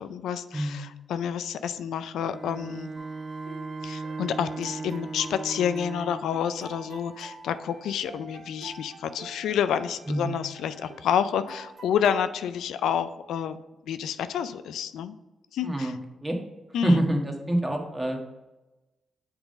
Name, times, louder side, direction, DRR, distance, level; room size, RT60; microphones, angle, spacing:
voice 1, 0.0-2.9 3.8-13.6 13.9-15.1 15.5-16.0 16.7-17.0, left 8 dB, 90° left, 12 dB, 0.3 m, -29 dB
voice 2, 0.5-0.9 10.1-10.4 15.6-16.4 16.8-18.2, right 1 dB, 15° right, 2 dB, 1.3 m, -26 dB
Bowed string instrument, 2.3-6.4, right 4 dB, 40° right, 0.3 m, -37 dB
sound 1, 2.9-12.2, right 2 dB, 70° right, 1.7 m, -45 dB
7.0 x 3.9 x 5.2 m, 1.1 s
cardioid pair, 75°, 0 cm